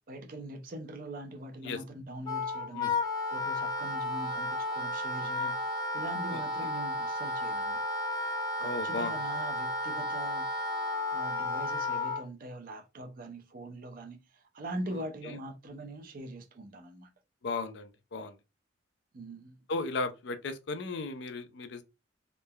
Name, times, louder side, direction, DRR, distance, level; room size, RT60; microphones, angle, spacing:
voice 1, 0.1-3.0 3.3-5.6 5.9-7.8 8.6-10.5 11.1-17.1 19.1-19.6, right 1 dB, 50° right, 0.5 m, -42 dB
Wind instrument woodwind instrument, 2.2-12.2, left 2 dB, 20° left, 0.6 m, -33 dB
voice 2, 6.3-6.7 8.6-9.1 15.2-15.3 17.4-18.4 19.7-21.8, left 3 dB, 65° left, 0.4 m, -36 dB
3.1 x 2.1 x 2.2 m
head